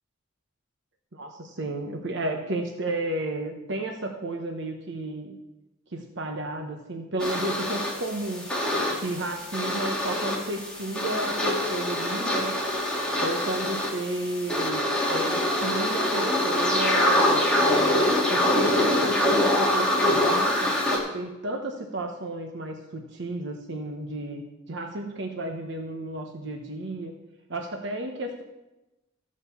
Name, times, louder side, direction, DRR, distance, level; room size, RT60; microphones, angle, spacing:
voice 1, 1.1-5.4 5.9-8.5 8.9-12.6 13.2-20.8 21.1-27.1 27.5-28.4, right 1 dB, 60° right, 3 dB, 1.1 m, -33 dB
sound 1, 7.2-21.0, left 1 dB, 5° left, 2.5 m, -25 dB
15.0 x 5.3 x 7.0 m, 0.99 s
head